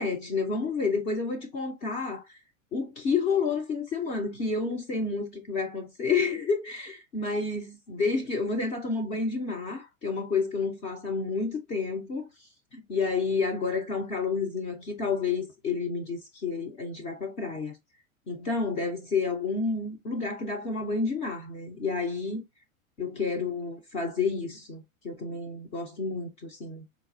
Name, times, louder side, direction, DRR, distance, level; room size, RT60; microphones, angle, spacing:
voice 1, 0.0-2.4 2.7-12.3 12.7-17.7 18.3-22.4 23.0-26.8, left 4 dB, 15° left, 0.3 m, -30 dB
4.0 x 2.2 x 2.4 m
hypercardioid pair, 100°, 41 cm